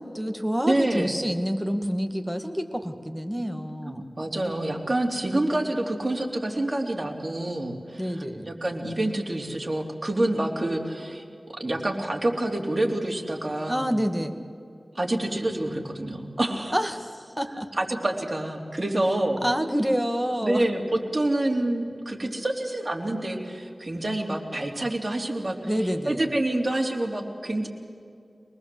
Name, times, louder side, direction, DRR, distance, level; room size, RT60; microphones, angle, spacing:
voice 1, 0.0-4.1 8.0-8.5 13.7-14.3 16.7-17.7 19.4-20.7 25.6-26.2, equal, 5° right, 5 dB, 2.0 m, -28 dB
voice 2, 0.7-1.2 3.9-13.9 15.0-16.8 17.8-19.4 20.4-20.8 21.1-25.6 26.1-27.7, right 1 dB, 40° right, 1 dB, 3.4 m, -27 dB
24.5 x 19.5 x 7.9 m, 2.4 s
wide cardioid pair, 60°, 0 cm